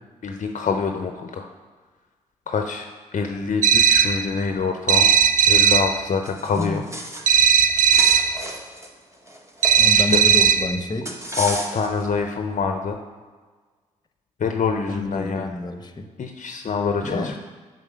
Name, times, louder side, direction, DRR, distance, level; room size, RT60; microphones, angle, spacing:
voice 1, 0.2-1.5 2.5-5.1 5.5-6.8 10.0-10.2 11.3-13.0 14.4-15.5 16.2-17.4, left 5 dB, 50° left, 5 dB, 0.7 m, -25 dB
sound 1, 3.6-4.3 4.9-6.0 7.3-8.4 9.6-10.8, right 7 dB, 50° right, 0.5 m, -16 dB
sound 2, 6.3-7.4 7.7-10.4 11.1-12.0, right 1 dB, 15° right, 1.4 m, -33 dB
voice 2, 6.6-6.9 9.8-11.1 14.9-16.1 17.0-17.4, left 2 dB, 25° left, 7 dB, 0.9 m, -28 dB
6.5 x 4.4 x 6.3 m, 1.4 s
hypercardioid pair, 40°, 17 cm